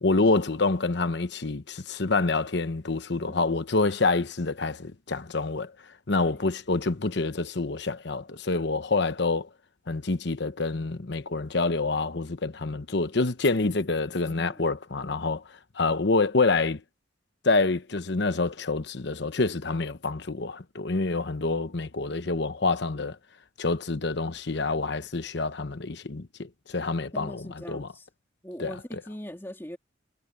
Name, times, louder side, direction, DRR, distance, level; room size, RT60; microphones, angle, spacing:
voice 1, 0.0-5.7 6.1-9.5 9.9-15.4 15.8-16.8 17.4-23.2 23.6-27.9 28.6-28.7, left 3 dB, 60° left, 1.0 m, -27 dB
voice 2, 14.3-14.6 27.1-28.1 28.4-29.8, equal, 10° left, 2.5 m, -41 dB
head